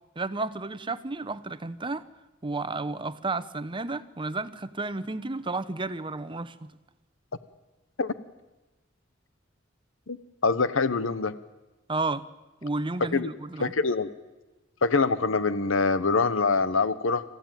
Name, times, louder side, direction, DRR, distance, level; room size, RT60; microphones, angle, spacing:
voice 1, 0.2-2.0 2.4-6.7 11.9-12.2 12.6-13.7, right 3 dB, 25° right, 13 dB, 0.9 m, -32 dB
voice 2, 10.4-11.4 13.1-13.3 13.6-14.1 14.8-17.2, left 4 dB, 85° left, 14 dB, 0.9 m, -24 dB
28.0 x 15.5 x 9.1 m, 1.1 s
head